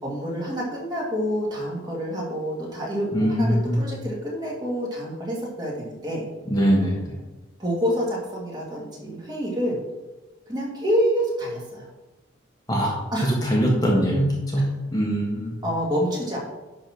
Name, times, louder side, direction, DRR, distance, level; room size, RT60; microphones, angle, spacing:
voice 1, 0.0-6.2 7.6-9.8 10.5-11.9 13.1-13.3 14.6-14.7 15.6-16.4, equal, 20° right, -4 dB, 2.3 m, -27 dB
voice 2, 3.1-3.8 6.5-7.0 12.7-13.0 13.4-14.6 14.9-15.6, equal, 20° left, -3 dB, 1.5 m, -22 dB
10.5 x 4.1 x 6.0 m, 1.1 s
head